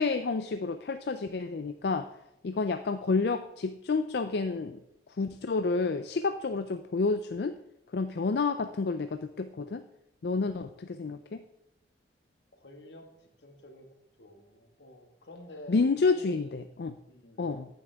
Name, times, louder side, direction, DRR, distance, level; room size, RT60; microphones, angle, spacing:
voice 1, 0.0-2.1 2.4-4.8 5.2-7.6 7.9-9.8 10.2-11.4 15.7-16.9 17.4-17.7, left 4 dB, 65° left, 9 dB, 0.4 m, -29 dB
voice 2, 12.5-13.1 13.4-13.9 14.2-16.6 17.1-17.6, left 1 dB, 85° left, 4 dB, 1.8 m, -50 dB
14.5 x 8.6 x 3.5 m, 0.83 s
head